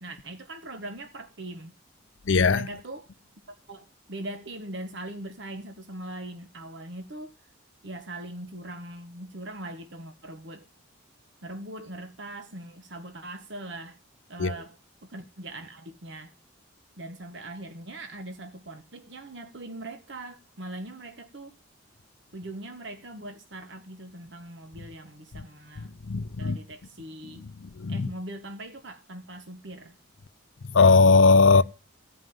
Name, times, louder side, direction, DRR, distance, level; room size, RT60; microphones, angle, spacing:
voice 1, 0.0-1.7 2.5-3.1 3.7-7.3 7.8-10.7 11.4-14.0 14.3-14.8 15.0-16.3 17.0-21.6 22.3-26.0 26.4-27.5 27.9-30.0 31.5-31.6, right 1 dB, 55° right, 1.3 m, -41 dB
voice 2, 2.3-2.7 14.4-14.5 26.1-26.6 27.8-28.1 30.7-31.6, left 4 dB, 65° left, 0.6 m, -18 dB
15.5 x 5.6 x 9.4 m
head